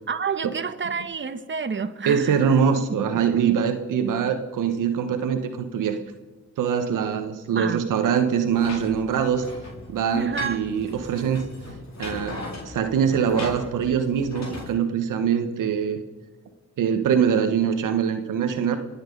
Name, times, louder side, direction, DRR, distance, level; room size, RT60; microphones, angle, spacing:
voice 1, 0.1-2.5 7.5-7.9 10.1-10.6, right 5 dB, 40° right, 10 dB, 1.2 m, -29 dB
voice 2, 2.0-6.0 6.6-9.4 9.9-11.5 12.0-12.4 12.6-16.0 16.8-18.8, right 7 dB, 85° right, 8 dB, 1.2 m, -23 dB
sound 1, 8.5-14.7, left 2 dB, 60° left, 4.6 m, -38 dB
25.0 x 8.9 x 5.4 m, 1.3 s
cardioid pair, 55°, 31 cm